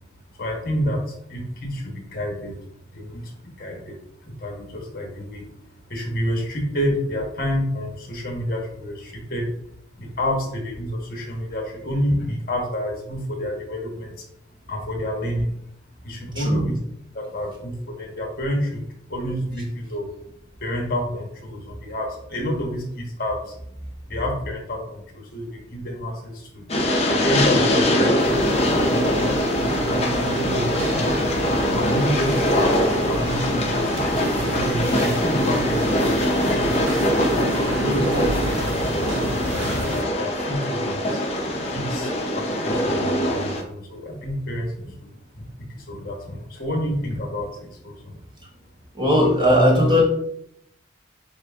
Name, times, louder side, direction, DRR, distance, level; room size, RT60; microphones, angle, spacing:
voice 1, 0.3-2.5 2.9-4.0 4.3-5.4 5.9-9.5 10.0-14.2 14.7-15.5 16.0-16.8 17.1-18.8 19.1-20.1 20.6-23.5 24.1-26.7 27.1-31.1 31.5-34.0 34.5-37.4 37.8-38.9 39.2-41.2 41.7-45.1 45.3-45.4 45.7-48.1, equal, 50° left, 0 dB, 1.1 m, -29 dB
Train, 26.7-43.6, left 1 dB, 35° left, 0.6 m, -22 dB
sound 1, 28.2-40.0, right 2 dB, 85° right, 0.6 m, -30 dB
voice 2, 48.9-50.0, equal, 25° right, -2 dB, 1.0 m, -17 dB
7.3 x 2.5 x 2.4 m, 0.73 s
head